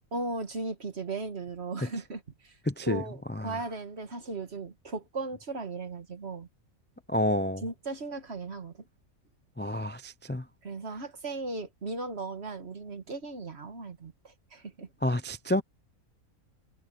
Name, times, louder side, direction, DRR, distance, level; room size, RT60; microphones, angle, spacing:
voice 1, 0.1-2.6 2.9-6.5 7.6-8.9 10.6-14.9, right 3 dB, 50° right, 2.0 m, -37 dB
voice 2, 2.7-3.0 3.4-3.6 7.1-7.6 9.6-10.4 15.0-15.6, left 1 dB, 15° left, 0.4 m, -29 dB
omnidirectional pair, 1.4 m